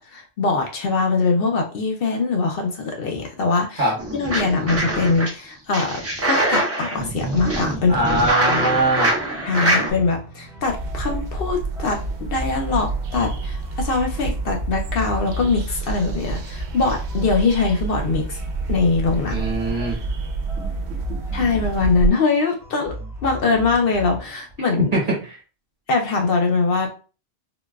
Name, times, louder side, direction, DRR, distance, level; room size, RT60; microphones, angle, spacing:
voice 1, 0.0-8.2 8.5-8.7 9.4-18.4 18.7-19.4 21.3-22.9 23.2-24.9 25.9-26.9, left 4 dB, 65° left, 2 dB, 0.7 m, -22 dB
sound 1, 4.0-5.3 5.7-9.9, right 1 dB, 20° right, 0.4 m, -23 dB
voice 2, 7.9-9.1 19.3-20.0 20.6-21.5 24.9-25.4, right 1 dB, 50° right, 0 dB, 1.0 m, -23 dB
sound 2, 8.0-25.3, left 2 dB, 5° right, 0.7 m, -39 dB
sound 3, 10.6-22.1, right 3 dB, 80° right, 0.9 m, -28 dB
3.8 x 2.2 x 2.3 m, 0.35 s
omnidirectional pair, 1.1 m